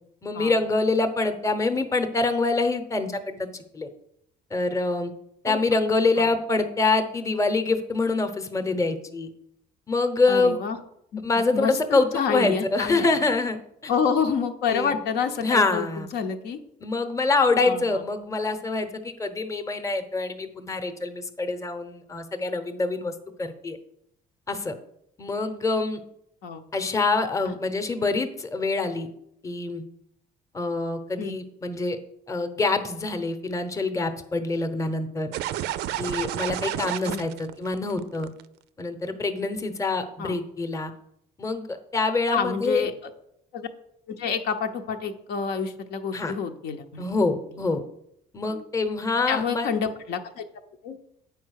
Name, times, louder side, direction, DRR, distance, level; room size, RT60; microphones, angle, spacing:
voice 1, 0.2-3.5 3.7-3.9 4.5-5.1 5.4-9.3 9.9-10.6 11.2-13.6 13.8-13.9 14.7-15.0 15.4-16.1 16.8-23.1 23.4-23.8 24.5-24.7 25.2-26.0 26.7-29.1 29.4-29.8 30.5-32.0 32.3-35.3 36.0-38.3 38.8-40.9 41.4-42.8 46.1-46.3 47.0-47.8 48.3-49.7, left 3 dB, 20° left, 9 dB, 0.8 m, -25 dB
voice 2, 10.3-10.8 11.1-11.2 11.5-13.1 13.9-16.6 17.6-18.0 26.4-26.6 27.5-27.6 31.2-31.3 37.1-37.3 40.2-40.4 42.3-42.9 43.5-43.7 44.2-47.1 48.5-48.7 49.3-50.4 50.8-51.0, left 6 dB, 75° left, 5 dB, 0.9 m, -28 dB
sound 1, 35.3-38.4, right 13 dB, 85° right, 0.4 m, -30 dB
8.5 x 4.7 x 6.4 m, 0.77 s
cardioid pair, 110°, 17 cm